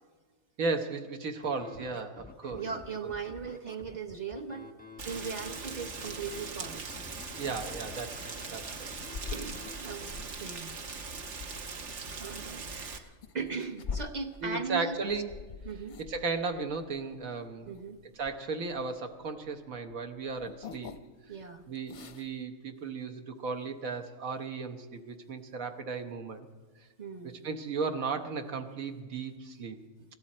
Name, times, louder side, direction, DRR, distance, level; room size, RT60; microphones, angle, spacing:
voice 1, 0.6-2.6 7.4-8.9 14.4-15.4 16.0-17.7 18.2-20.9 21.7-26.5 27.2-29.8, right 4 dB, 75° right, 6 dB, 1.6 m, -35 dB
Scratching (performance technique), 1.4-9.9, left 3 dB, 10° left, 0.8 m, -49 dB
voice 2, 2.5-4.7 5.0-7.0 9.3-10.7 12.2-15.0 15.6-16.0 17.7-18.0 21.3-21.6 27.0-27.4, right 5 dB, 35° right, 6 dB, 0.9 m, -39 dB
Rain, 5.0-13.0, right 4 dB, 60° right, 1.3 m, -41 dB
sound 1, 9.1-19.5 19.8-21.3 21.6-22.4, left 5 dB, 50° left, 0.6 m, -44 dB
24.5 x 13.0 x 4.3 m, 1.4 s
omnidirectional pair, 1.5 m